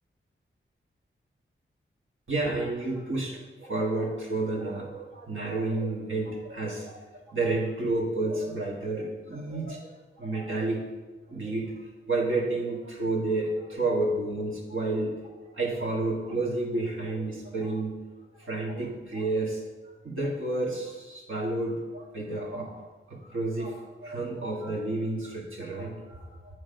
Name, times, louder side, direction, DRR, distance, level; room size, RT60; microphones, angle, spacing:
voice 1, 2.3-7.0 7.3-9.9 10.2-10.8 11.3-11.7 12.1-15.2 15.5-18.0 18.4-19.7 20.0-26.3, right 2 dB, 70° right, -2 dB, 1.6 m, -30 dB
8.7 x 3.2 x 5.0 m, 1.2 s
wide cardioid pair, 75°, 21 cm